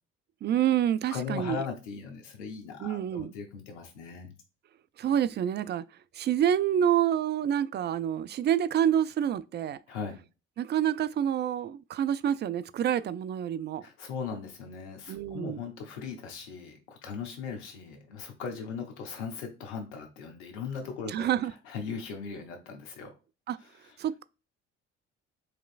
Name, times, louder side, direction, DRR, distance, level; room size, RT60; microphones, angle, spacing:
voice 1, 0.4-1.6 2.8-3.3 5.0-5.8 6.1-9.8 10.6-13.9 15.1-15.6 21.1-21.5 23.5-23.6 24.0-24.2, right 10 dB, 30° right, 0.4 m, -27 dB
voice 2, 1.1-4.3 9.9-10.2 13.8-21.3 21.6-23.1, left 6 dB, 80° left, 0.9 m, -38 dB
4.7 x 3.0 x 2.5 m
hypercardioid pair, 50°, 34 cm